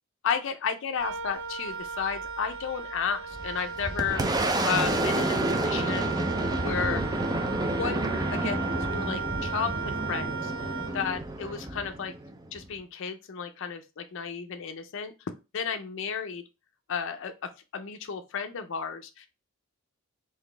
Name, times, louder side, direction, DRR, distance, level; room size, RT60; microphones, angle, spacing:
voice 1, 0.2-4.2 4.7-6.1 6.6-7.0 7.7-8.0 8.3-10.7 10.9-12.1 12.5-15.1 15.5-16.4 16.9-19.3, left 6 dB, 60° left, 7 dB, 0.5 m, -33 dB
Wind instrument woodwind instrument, 1.0-11.4, right 5 dB, 60° right, 0.6 m, -36 dB
Boom, 3.3-12.7, right 2 dB, 20° right, 0.4 m, -29 dB
4.0 x 2.7 x 3.2 m, 0.27 s
head